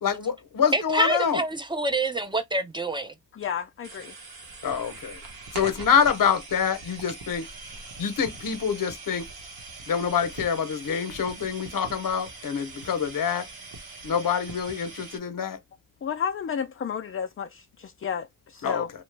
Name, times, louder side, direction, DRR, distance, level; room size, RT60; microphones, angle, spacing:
voice 1, 0.0-1.4 4.6-5.2 5.5-7.5 8.0-9.3 9.9-13.5 14.0-15.6 18.6-18.9, left 7 dB, 60° left, 0.7 m, -26 dB
voice 2, 0.7-3.1, right 2 dB, 15° right, 0.6 m, -26 dB
voice 3, 3.3-4.2 16.0-18.9, left 7 dB, 35° left, 0.4 m, -32 dB
sound 1, 3.8-15.2, right 3 dB, 85° right, 0.9 m, -42 dB
2.9 x 2.1 x 3.2 m
cardioid pair, 60°, 36 cm